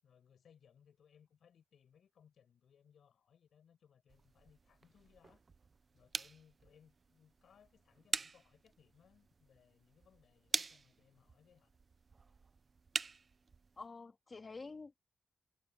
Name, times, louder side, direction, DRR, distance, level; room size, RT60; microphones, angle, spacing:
voice 1, 0.0-5.4 5.9-11.7, left 8 dB, 80° left, 6.6 m, -67 dB
sound 1, 4.1-13.9, right 4 dB, 40° right, 0.4 m, -45 dB
voice 2, 13.8-15.0, left 4 dB, 35° left, 2.2 m, -48 dB
wide cardioid pair, 115°, 0 cm